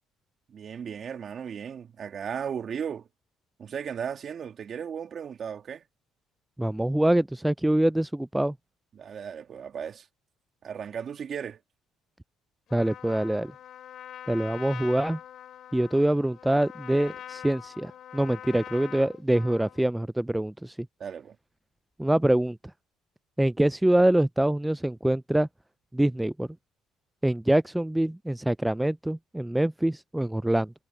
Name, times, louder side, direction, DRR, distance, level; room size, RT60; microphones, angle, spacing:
voice 1, 0.5-3.1 3.6-5.8 8.9-10.1 10.6-11.6 21.0-21.4, right 7 dB, 45° right, 2.1 m, -36 dB
voice 2, 6.6-8.5 12.7-13.5 14.3-15.2 15.7-20.8 22.0-22.6 23.4-25.5 25.9-26.5 27.2-30.7, right 1 dB, 5° right, 0.3 m, -25 dB
Trumpet, 12.7-19.8, left 10 dB, 60° left, 2.5 m, -44 dB
supercardioid pair, 85°, 0 cm